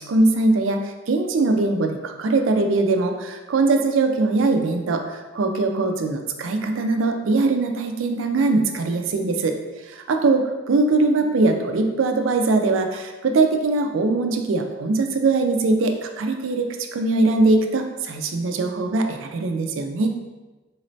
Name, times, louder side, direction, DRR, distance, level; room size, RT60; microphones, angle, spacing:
voice 1, 0.1-20.2, right 3 dB, 90° right, 5 dB, 0.4 m, -21 dB
4.0 x 3.1 x 2.6 m, 1.2 s
head